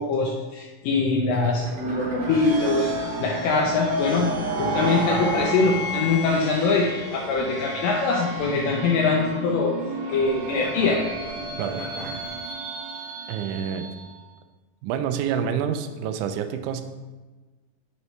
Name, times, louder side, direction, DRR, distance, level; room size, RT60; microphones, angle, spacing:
voice 1, 0.0-4.3 4.6-9.7 10.1-11.0, left 4 dB, 80° left, -2 dB, 2.3 m, -23 dB
sound 1, 1.3-2.9 4.1-9.8 10.1-12.3, right 1 dB, 50° right, 1.1 m, -40 dB
sound 2, 1.6-14.2, right 2 dB, 65° right, 1.8 m, -31 dB
voice 2, 13.3-13.9 14.8-16.8, right 8 dB, 90° right, 7 dB, 1.7 m, -27 dB
7.8 x 5.5 x 3.2 m, 1.2 s
omnidirectional pair, 4.1 m